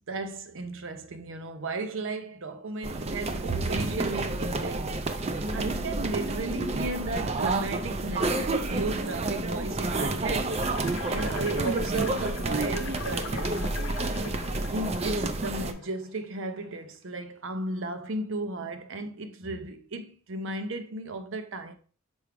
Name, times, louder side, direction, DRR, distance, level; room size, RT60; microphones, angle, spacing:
voice 1, 0.1-10.6 11.1-13.8 14.7-21.8, right 2 dB, 65° right, 0.7 m, -35 dB
sound 1, 2.8-15.7, right 2 dB, 30° right, 0.5 m, -30 dB
sound 2, 10.5-16.2, left 6 dB, 55° left, 0.4 m, -42 dB
6.2 x 4.8 x 3.4 m
head